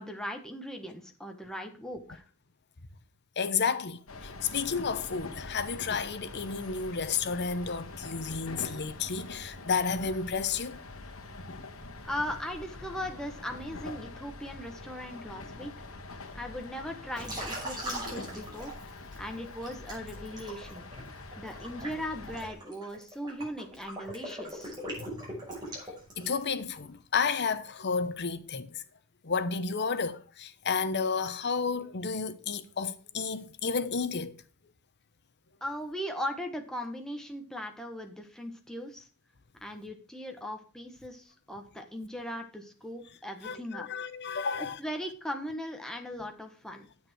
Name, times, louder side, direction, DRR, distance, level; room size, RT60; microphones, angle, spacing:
voice 1, 0.0-2.2 12.0-15.7 16.3-18.7 19.2-20.9 21.4-24.8 35.6-39.1 39.6-43.9 44.6-46.9, equal, 5° left, 1.5 m, -38 dB
voice 2, 3.4-10.8 25.0-25.1 26.2-28.8 29.2-34.4 43.4-44.8, left 5 dB, 55° left, 0.9 m, -31 dB
sound 1, 4.1-22.5, left 2 dB, 70° left, 1.6 m, -44 dB
Liquid, 17.1-19.2 19.6-26.6, right 1 dB, 20° right, 6.1 m, -40 dB
9.7 x 8.2 x 4.6 m
head